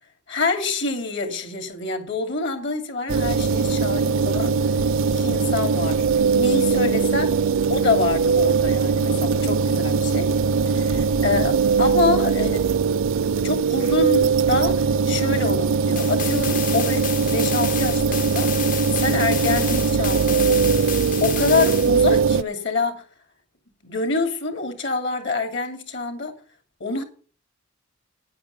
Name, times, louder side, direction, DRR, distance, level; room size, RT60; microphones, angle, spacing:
voice 1, 0.3-4.6 5.1-6.0 6.3-7.4 7.7-10.3 10.7-12.7 13.2-20.9 21.2-23.0 23.8-26.4 26.8-27.0, left 3 dB, 60° left, 2.6 m, -26 dB
sound 1, 3.1-22.4, right 5 dB, 70° right, 0.4 m, -21 dB
sound 2, 16.0-21.9, left 9 dB, 40° left, 0.6 m, -31 dB
9.6 x 8.7 x 6.7 m
head